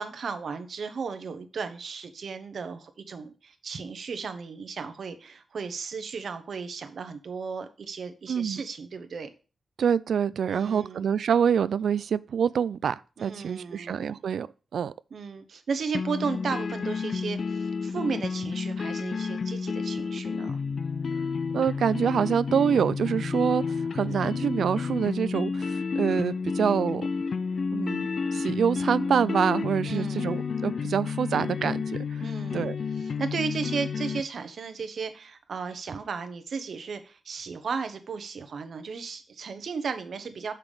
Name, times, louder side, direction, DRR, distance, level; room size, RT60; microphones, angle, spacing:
voice 1, 0.0-9.3 10.5-11.1 13.2-14.2 15.1-20.6 29.8-30.3 32.2-32.7 32.9-40.5, right 5 dB, 65° right, 1.0 m, -35 dB
voice 2, 8.3-8.6 9.8-14.5 14.7-14.9 21.5-27.1 27.7-31.8 32.5-32.8, right 7 dB, 90° right, 0.3 m, -26 dB
sound 1, 15.9-34.2, left 5 dB, 55° left, 0.4 m, -30 dB
7.0 x 5.8 x 4.9 m
wide cardioid pair, 135°, 0 cm